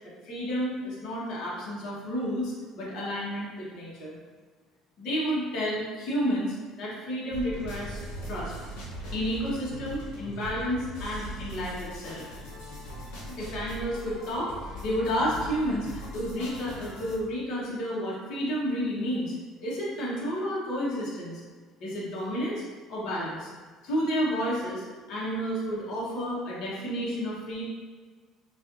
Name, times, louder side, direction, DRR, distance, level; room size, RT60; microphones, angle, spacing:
voice 1, 0.2-4.1 5.0-8.0 8.3-8.5 9.1-12.2 13.3-14.5 14.8-19.3 19.6-21.4 21.8-22.6 22.9-23.5 23.8-24.8 25.1-27.6, equal, 60° left, -6 dB, 1.2 m, -31 dB
sound 1, 7.3-17.2, equal, 85° left, 0.9 m, -40 dB
5.3 x 2.5 x 2.6 m, 1.5 s
supercardioid pair, 100°, 0 cm